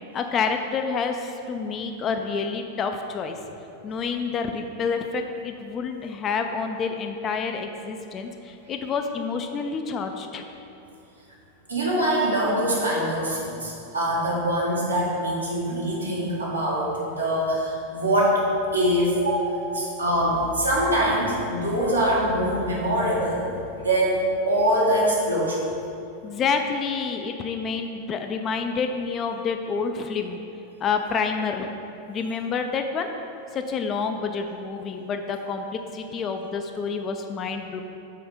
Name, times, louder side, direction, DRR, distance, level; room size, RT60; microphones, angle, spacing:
voice 1, 0.1-3.4 3.8-10.4 26.2-30.4 30.8-31.7 32.1-33.1 33.5-37.8, left 5 dB, 30° left, 5 dB, 0.3 m, -28 dB
voice 2, 11.7-16.9 17.2-18.4 18.7-25.6, right 1 dB, 80° right, -5 dB, 1.4 m, -23 dB
5.6 x 4.2 x 4.9 m, 2.9 s
figure-of-eight pair, 90°, 0 cm